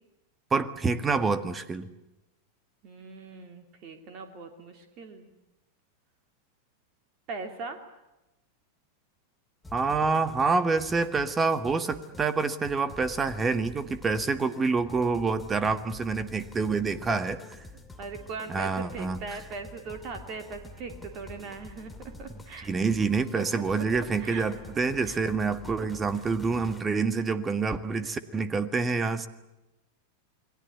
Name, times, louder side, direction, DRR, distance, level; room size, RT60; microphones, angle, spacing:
voice 1, 0.5-1.9 9.7-17.4 18.5-19.2 22.6-29.3, right 4 dB, 15° right, 14 dB, 1.7 m, -27 dB
voice 2, 2.8-5.3 7.3-7.8 17.7-22.7 23.3-23.5 24.2-24.4 25.0-25.2 25.8-25.9 28.0-28.1, right 4 dB, 40° right, 6 dB, 3.0 m, -40 dB
sound 1, 9.6-26.8, left 2 dB, 10° left, 2.6 m, -47 dB
29.0 x 21.5 x 8.3 m, 0.96 s
figure-of-eight pair, 90°, 0 cm